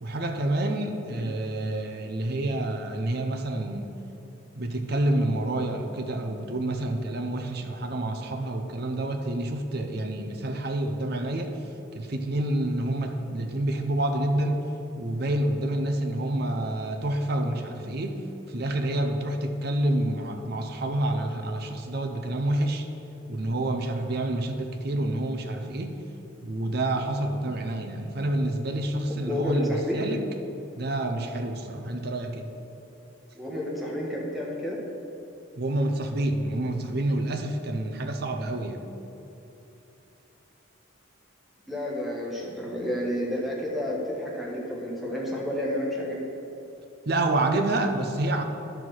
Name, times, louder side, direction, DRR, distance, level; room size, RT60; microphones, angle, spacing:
voice 1, 0.0-3.9 4.5-11.6 11.9-14.6 14.9-18.2 18.5-22.9 23.3-26.0 26.4-30.2 30.8-32.5 35.6-38.9 47.1-48.4, right 1 dB, 50° right, 5 dB, 0.7 m, -28 dB
voice 2, 29.3-30.0 33.3-34.8 41.7-46.2, left 1 dB, ahead, -4 dB, 1.2 m, -30 dB
10.5 x 4.6 x 6.3 m, 2.9 s
head